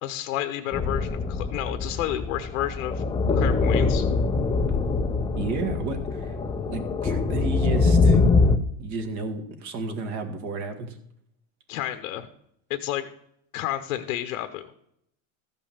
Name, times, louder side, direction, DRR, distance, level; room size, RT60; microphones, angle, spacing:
voice 1, 0.0-3.0 3.3-4.0 11.7-12.3 12.7-13.1 13.5-14.7, left 12 dB, 80° left, 9 dB, 1.0 m, -30 dB
sound 1, 0.7-8.6, left 4 dB, 10° left, 0.5 m, -23 dB
voice 2, 5.4-6.3 6.7-8.2 8.8-10.9, right 3 dB, 45° right, 7 dB, 1.9 m, -32 dB
14.0 x 5.4 x 7.2 m, 0.73 s
supercardioid pair, 145°, 40 cm